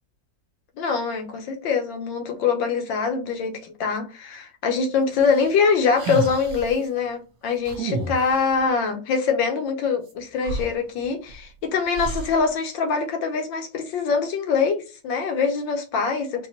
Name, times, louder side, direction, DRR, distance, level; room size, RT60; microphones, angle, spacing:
voice 1, 0.8-16.5, left 5 dB, 85° left, 1.6 m, -24 dB
sound 1, 5.2-6.8 7.7-8.6 10.1-10.2 10.4-11.4 12.0-12.5, right 3 dB, 55° right, 1.3 m, -31 dB
4.6 x 2.3 x 2.9 m
omnidirectional pair, 2.1 m